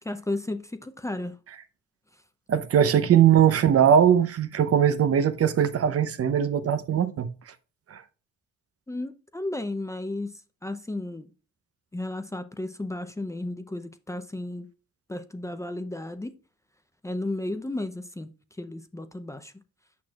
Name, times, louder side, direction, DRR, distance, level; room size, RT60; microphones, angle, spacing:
voice 1, 0.0-1.4 8.9-10.3 10.6-11.3 11.9-14.7 15.1-16.3 17.0-18.3 18.6-19.5, left 2 dB, 10° left, 0.6 m, -33 dB
voice 2, 2.5-7.3 7.9-8.0, right 9 dB, 50° right, 0.8 m, -20 dB
8.6 x 6.0 x 2.4 m
cardioid pair, 90°, 30 cm